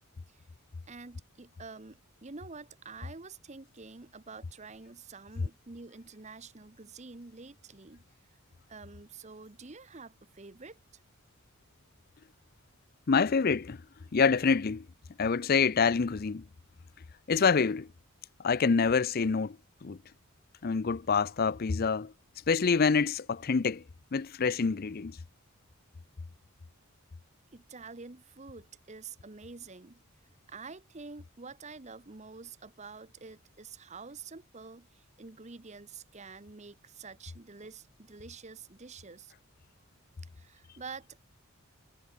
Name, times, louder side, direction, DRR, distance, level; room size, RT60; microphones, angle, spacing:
voice 1, 0.9-8.0 8.7-10.8 27.5-30.0 30.5-39.3 40.4-41.3, right 4 dB, 30° right, 0.9 m, -47 dB
voice 2, 13.1-13.8 14.1-14.9 15.2-16.4 17.3-17.9 18.4-19.6 19.8-20.0 20.6-22.1 22.5-23.8 24.1-25.2, left 5 dB, 45° left, 0.5 m, -26 dB
head